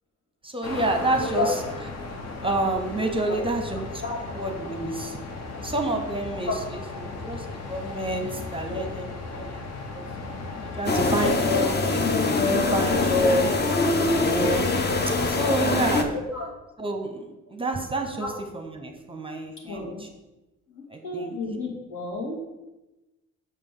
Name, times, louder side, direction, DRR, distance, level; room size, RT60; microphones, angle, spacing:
voice 1, 0.4-1.5 2.4-4.0 4.4-5.2 5.6-9.6 9.9-10.1 10.7-13.6 14.1-14.7 15.2-16.1 16.8-20.1 20.9-21.3, right 1 dB, 20° right, 4 dB, 0.8 m, -28 dB
sound 1, 0.6-11.4, left 3 dB, 60° left, 1.0 m, -36 dB
voice 2, 1.1-1.6 3.3-3.4 4.0-4.2 6.4-7.0 8.7-8.8 9.1-9.4 16.1-16.5 18.2-18.3 19.7-20.0 20.7-22.5, left 3 dB, 75° left, -3 dB, 2.3 m, -32 dB
sound 2, 10.9-16.0, left 3 dB, 35° left, 0.7 m, -23 dB
6.7 x 5.1 x 3.8 m, 1.0 s
cardioid pair, 90°, 30 cm